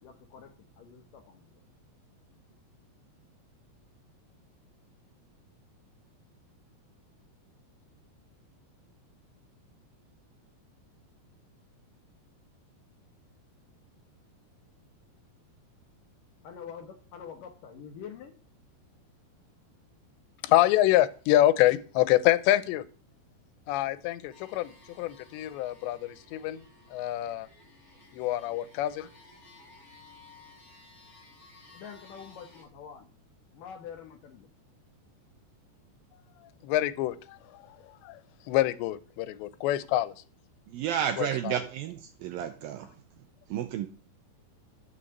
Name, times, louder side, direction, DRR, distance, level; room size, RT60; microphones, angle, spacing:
voice 1, 0.0-1.6 16.4-18.3 31.7-33.1 33.5-34.5, left 7 dB, 70° left, 7 dB, 2.1 m, -46 dB
voice 2, 20.4-22.8 23.7-24.7 25.0-26.6 26.9-27.5 28.1-29.1 36.6-37.4 38.0-38.2 38.5-40.1 41.2-41.3, left 14 dB, 90° left, 15 dB, 3.0 m, -25 dB
sound 1, 24.3-32.6, left 3 dB, 20° left, 8.0 m, -56 dB
voice 3, 40.7-43.0 43.5-43.9, right 10 dB, 80° right, 9 dB, 2.1 m, -32 dB
11.0 x 6.9 x 7.8 m, 0.39 s
omnidirectional pair, 5.0 m